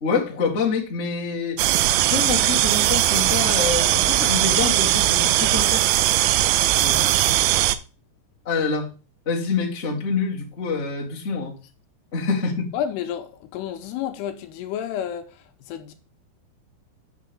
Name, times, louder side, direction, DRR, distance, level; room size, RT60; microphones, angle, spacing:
voice 1, 0.0-1.6 2.1-5.9 8.4-8.9 9.2-11.5 12.1-12.7, left 5 dB, 65° left, 0.6 m, -26 dB
sound 1, 1.6-7.8, right 14 dB, 85° right, 2.8 m, -19 dB
voice 2, 6.8-7.2 12.7-15.9, left 9 dB, 80° left, 2.6 m, -31 dB
7.6 x 6.0 x 5.3 m
omnidirectional pair, 5.1 m